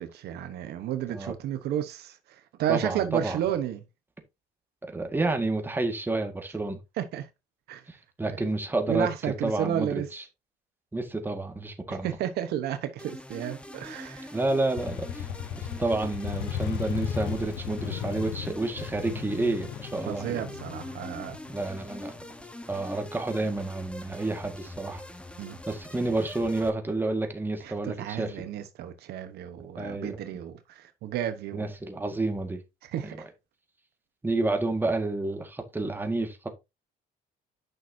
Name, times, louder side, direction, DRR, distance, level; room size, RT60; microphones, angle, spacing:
voice 1, 0.0-3.8 7.0-7.3 7.7-7.8 8.3-8.4 8.9-10.1 11.9-14.4 20.0-21.4 25.4-25.6 27.6-31.7 32.8-33.3, right 10 dB, 75° right, 1.1 m, -32 dB
voice 2, 2.7-3.4 4.8-6.8 7.9-10.2 10.9-12.2 14.3-15.3 15.6-20.4 21.5-22.1 22.7-25.0 25.7-28.4 29.8-30.2 31.5-32.6 33.0-33.2 34.2-36.5, right 2 dB, 10° right, 1.7 m, -30 dB
sound 1, 13.0-26.7, left 1 dB, 5° left, 1.1 m, -44 dB
Motorcycle, 14.8-22.4, left 9 dB, 75° left, 1.0 m, -36 dB
9.1 x 6.2 x 2.7 m
cardioid pair, 110°, 17 cm